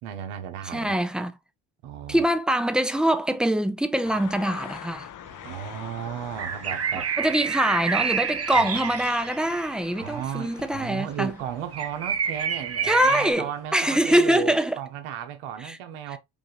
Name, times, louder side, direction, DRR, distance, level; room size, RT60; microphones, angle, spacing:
voice 1, 0.0-0.9 1.8-2.2 5.4-7.1 8.5-8.7 10.0-16.2, right 9 dB, 80° right, 1.0 m, -35 dB
voice 2, 0.6-1.3 2.1-5.1 7.2-11.3 12.8-14.8 15.6-15.8 16.1-16.2, right 1 dB, ahead, 0.6 m, -24 dB
sound 1, 4.0-14.1, left 10 dB, 40° left, 0.7 m, -45 dB
sound 2, 5.3-5.4 6.1-10.5 10.8-10.9 11.1-11.2 11.5-13.3, right 7 dB, 30° right, 0.8 m, -29 dB
5.3 x 2.6 x 3.1 m
supercardioid pair, 80°, 50 cm